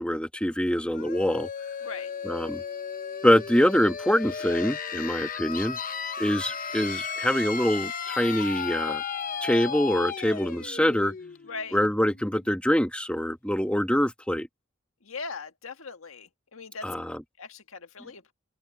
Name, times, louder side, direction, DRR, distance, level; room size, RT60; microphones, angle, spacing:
voice 1, 0.0-1.5 2.2-2.6 3.2-5.8 6.2-9.0 9.4-11.1 11.7-14.5 16.8-17.2, equal, 5° left, 1.4 m, -25 dB
sound 1, 0.9-12.5, left 6 dB, 40° left, 1.0 m, -35 dB
voice 2, 1.8-2.1 11.5-11.8 15.0-16.9 17.4-18.3, left 4 dB, 70° left, 1.8 m, -39 dB
open air
head